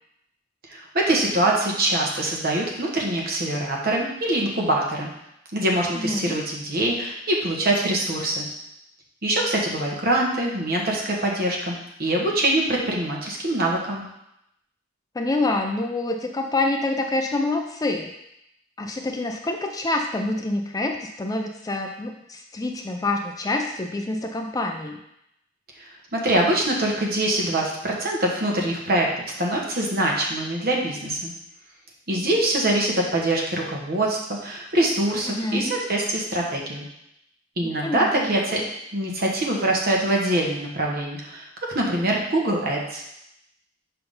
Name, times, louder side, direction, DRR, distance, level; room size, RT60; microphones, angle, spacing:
voice 1, 0.7-5.1 5.5-8.5 9.2-14.0 26.1-29.1 29.4-31.3 32.1-36.8 37.6-38.6 38.9-43.0, right 1 dB, 50° right, -1 dB, 1.2 m, -24 dB
voice 2, 5.9-6.4 15.2-18.1 18.8-25.0 35.3-35.7 37.6-38.6, left 2 dB, 20° left, 4 dB, 0.4 m, -27 dB
5.7 x 3.5 x 5.5 m, 0.81 s
head